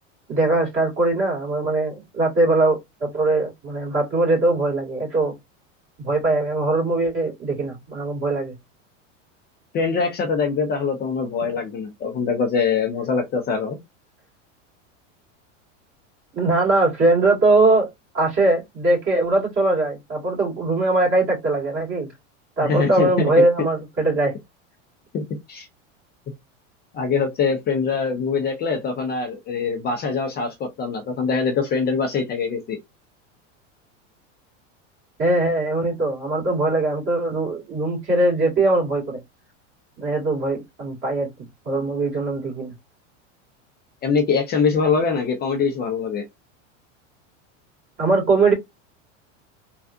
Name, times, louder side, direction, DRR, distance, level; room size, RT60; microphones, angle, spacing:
voice 1, 0.3-5.3 6.0-8.6 16.3-17.9 18.1-22.1 22.6-24.3 35.2-39.2 40.0-41.3 41.6-42.7 48.0-48.5, right 2 dB, 35° right, 2.2 m, -21 dB
voice 2, 9.7-13.8 22.6-23.3 25.1-25.7 26.9-32.8 44.0-46.2, left 5 dB, 25° left, 0.6 m, -23 dB
3.4 x 2.4 x 2.6 m
supercardioid pair, 125°, 37 cm